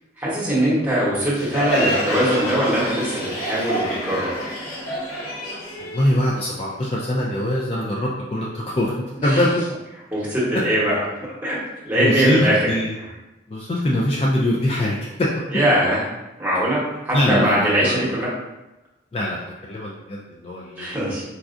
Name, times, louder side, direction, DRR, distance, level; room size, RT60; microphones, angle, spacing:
voice 1, 0.2-4.3 9.2-9.4 10.1-11.6 11.8-12.7 15.5-16.0 16.4-18.3 20.8-21.2, right 1 dB, 10° right, -8 dB, 0.9 m, -21 dB
Crowd, 1.3-6.8, equal, 85° left, 0.9 m, -27 dB
voice 2, 5.8-8.9 9.2-9.5 12.0-12.9 13.5-15.3 17.1-18.0 19.1-21.0, left 1 dB, 30° left, -4 dB, 0.3 m, -23 dB
4.2 x 2.3 x 2.5 m, 1.0 s
head